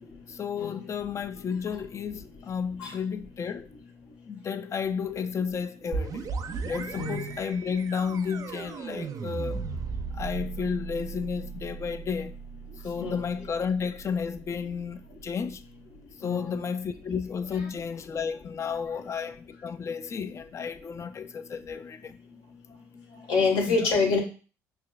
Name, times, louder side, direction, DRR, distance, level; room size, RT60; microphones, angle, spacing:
voice 1, 0.3-3.7 4.3-6.3 6.6-9.7 10.1-12.4 12.8-15.6 16.2-22.2 23.7-23.9, left 6 dB, 40° left, 0.4 m, -32 dB
sound 1, 5.9-15.5, right 5 dB, 50° right, 0.5 m, -37 dB
voice 2, 6.9-7.4 13.0-13.2 16.2-16.6 17.5-17.7 23.3-24.2, left 4 dB, 75° left, 1.4 m, -26 dB
5.9 x 2.2 x 2.3 m
supercardioid pair, 70°, 8 cm